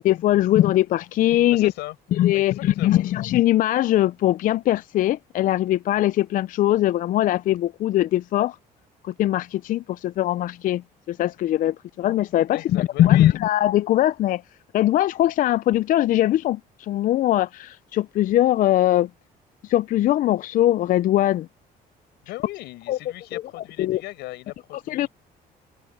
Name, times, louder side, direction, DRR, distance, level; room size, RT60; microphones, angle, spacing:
voice 1, 0.0-1.7 2.1-8.6 9.0-14.4 14.7-19.1 19.6-21.5 22.9-23.0 23.3-23.4 23.8-24.0 24.9-25.1, left 13 dB, 55° left, 0.4 m, -21 dB
voice 2, 1.5-1.9 2.3-2.4 2.8-3.0 12.5-13.4 22.2-25.1, left 18 dB, 90° left, 6.6 m, -37 dB
cardioid pair, 110°, 17 cm